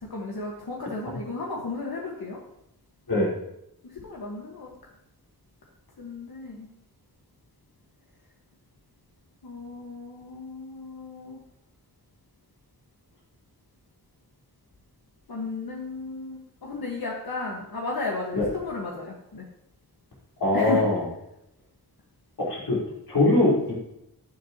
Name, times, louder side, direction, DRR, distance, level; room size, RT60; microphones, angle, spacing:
voice 1, 0.0-2.4 3.8-4.7 6.0-6.7 9.4-11.4 15.3-19.5 20.5-20.8, left 3 dB, 70° left, -2 dB, 1.7 m, -34 dB
voice 2, 20.4-21.1 22.4-22.8 23.1-23.7, left 2 dB, 90° left, -5 dB, 4.6 m, -22 dB
11.0 x 10.5 x 3.0 m, 0.81 s
wide cardioid pair, 70°, 37 cm